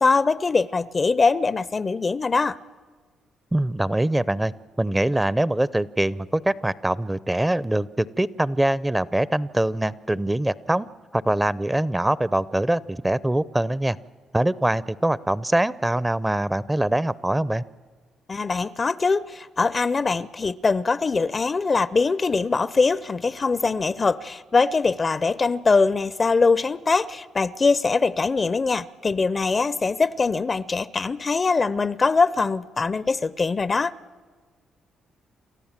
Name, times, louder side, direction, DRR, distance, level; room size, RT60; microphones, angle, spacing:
voice 1, 0.0-2.6 18.3-33.9, left 4 dB, 35° left, 0.6 m, -22 dB
voice 2, 3.5-4.5 4.8-10.9 11.1-14.0 14.3-17.6, right 1 dB, 15° right, 0.6 m, -23 dB
28.5 x 13.5 x 7.4 m
supercardioid pair, 65°, 0 cm